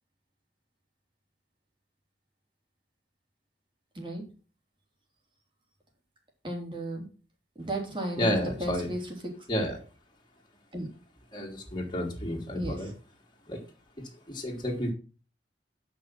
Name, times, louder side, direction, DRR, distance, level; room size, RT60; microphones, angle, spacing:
voice 1, 6.4-7.0 7.6-9.0 10.7-10.9 12.5-12.9, right 1 dB, 30° right, 1 dB, 3.3 m, -34 dB
voice 2, 8.1-8.9 9.5-9.8 11.3-12.9 13.5-13.6 14.0-14.9, equal, 25° left, -1 dB, 3.0 m, -31 dB
9.9 x 6.1 x 5.8 m, 0.35 s
head